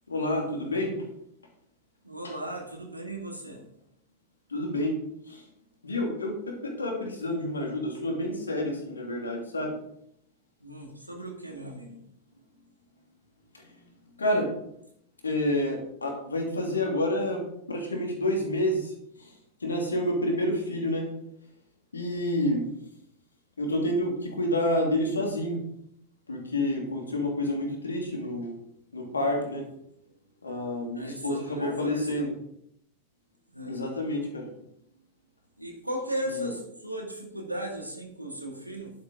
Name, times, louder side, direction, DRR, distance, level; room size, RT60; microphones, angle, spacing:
voice 1, 0.1-1.0 2.2-2.3 4.5-5.0 5.3-5.4 5.8-9.7 14.2-14.5 15.2-18.9 19.6-21.1 21.9-22.6 23.6-25.6 26.3-28.5 28.9-29.7 30.4-32.3 33.7-34.5 36.4-36.5, left 1 dB, 75° left, 1 dB, 2.8 m, -29 dB
voice 2, 2.0-3.6 10.6-12.0 30.9-32.3 33.5-34.0 35.6-38.9, right 1 dB, 90° right, 1 dB, 2.4 m, -36 dB
11.0 x 8.6 x 4.0 m, 0.72 s
figure-of-eight pair, 90°, 0 cm